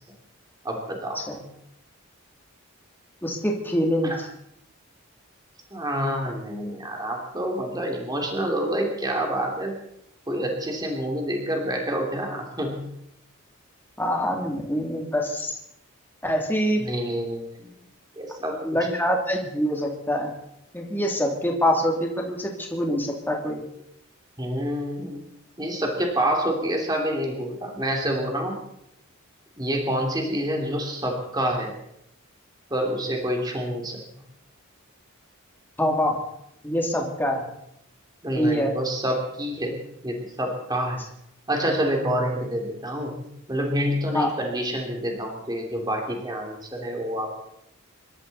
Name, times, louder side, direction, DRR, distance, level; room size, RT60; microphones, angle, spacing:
voice 1, 0.6-1.2 4.0-4.2 5.7-9.7 10.3-12.9 16.8-17.7 18.2-18.6 24.4-25.2 25.6-28.6 29.6-31.7 32.7-34.0 38.2-39.8 40.0-41.0 41.5-47.4, equal, 20° right, 1 dB, 2.7 m, -27 dB
voice 2, 3.2-4.1 14.0-15.5 16.2-16.8 18.6-20.3 20.7-23.6 35.8-36.2 36.6-37.5 38.3-38.7 44.1-44.3, equal, 10° left, 0 dB, 2.7 m, -25 dB
26.0 x 13.0 x 4.1 m, 0.76 s
head